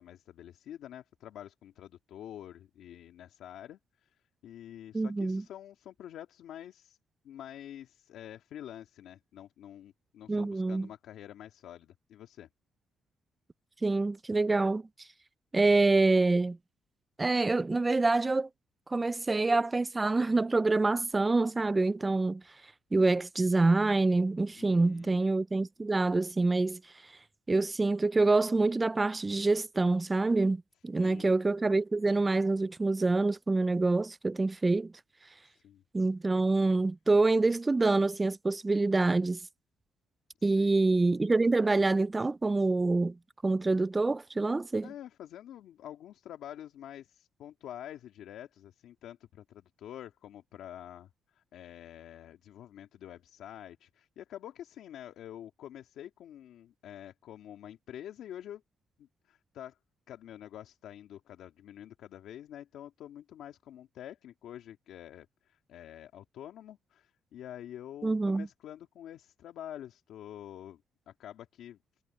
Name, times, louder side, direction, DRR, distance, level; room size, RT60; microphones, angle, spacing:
voice 1, 0.0-7.0 7.2-12.5 24.6-25.2 31.0-31.3 35.4-35.8 40.4-40.9 44.8-58.6 59.0-59.8 60.1-71.8, left 11 dB, 80° left, 2.1 m, -47 dB
voice 2, 4.9-5.4 10.3-10.9 13.8-14.8 15.5-16.6 17.2-18.5 18.9-22.4 22.9-26.8 27.5-34.9 35.9-39.4 40.4-43.1 43.4-44.9 68.0-68.5, right 3 dB, 20° right, 0.5 m, -26 dB
cardioid pair, 90°, 0 cm